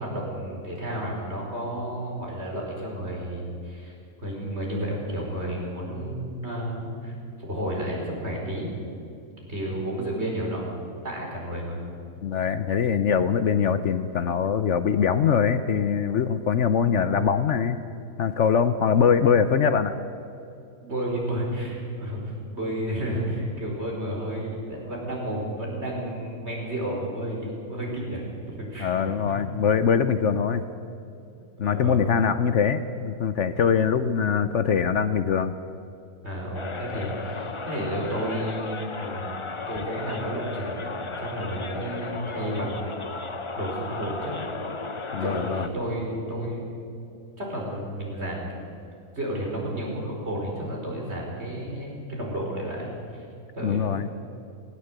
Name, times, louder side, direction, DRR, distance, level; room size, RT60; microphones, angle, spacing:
voice 1, 0.0-7.1 7.4-8.7 9.5-10.8 11.0-11.8 20.8-28.9 29.2-29.4 31.6-32.1 36.2-39.4 39.7-40.9 41.2-43.1 43.6-44.4 45.1-46.7 47.4-48.5 49.2-53.2 53.6-53.9, right 1 dB, 50° right, -2 dB, 5.3 m, -31 dB
voice 2, 12.2-17.8 18.2-20.0 28.8-30.6 31.6-35.5 45.1-45.7 53.6-54.1, left 7 dB, 60° left, 11 dB, 1.0 m, -23 dB
sound 1, 36.5-45.7, left 3 dB, 30° left, 0.7 m, -35 dB
18.0 x 18.0 x 8.0 m, 2.6 s
omnidirectional pair, 1.5 m